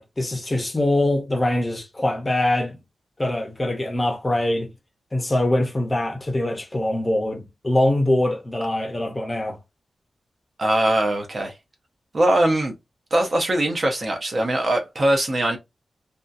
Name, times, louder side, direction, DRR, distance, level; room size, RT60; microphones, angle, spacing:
voice 1, 0.0-2.8 3.2-4.7 5.1-9.6, left 1 dB, 20° left, 0.6 m, -23 dB
voice 2, 10.6-11.5 12.1-12.7 13.1-15.6, right 1 dB, 35° right, 0.5 m, -21 dB
2.6 x 2.3 x 2.5 m
wide cardioid pair, 175°, 0 cm